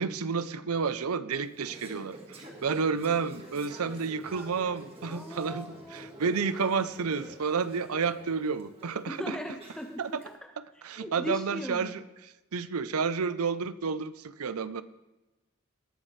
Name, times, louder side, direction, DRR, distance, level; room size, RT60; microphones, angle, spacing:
voice 1, 0.0-9.2 10.0-10.2 10.8-12.0 12.5-14.8, right 5 dB, 85° right, 15 dB, 0.6 m, -30 dB
Conversation / Chatter, 1.3-10.2, right 1 dB, 25° right, 1.7 m, -48 dB
voice 2, 5.1-6.7 9.1-11.9, equal, 5° left, 4 dB, 0.6 m, -39 dB
19.5 x 7.4 x 3.3 m, 1.1 s
head